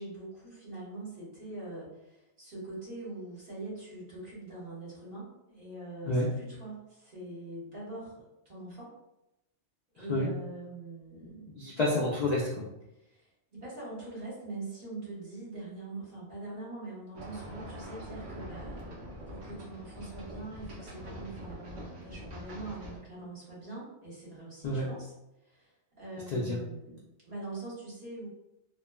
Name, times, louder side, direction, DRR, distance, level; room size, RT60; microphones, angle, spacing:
voice 1, 0.0-8.9 9.9-11.6 13.0-25.1 25.4-28.3, right 2 dB, 45° right, -8 dB, 1.3 m, -43 dB
voice 2, 10.0-10.3 11.5-12.6 24.6-24.9 26.3-26.6, left 1 dB, 70° left, -3 dB, 0.4 m, -29 dB
sound 1, 17.1-23.0, equal, 85° right, 1.0 m, -44 dB
3.1 x 2.1 x 2.2 m, 0.90 s
omnidirectional pair, 1.2 m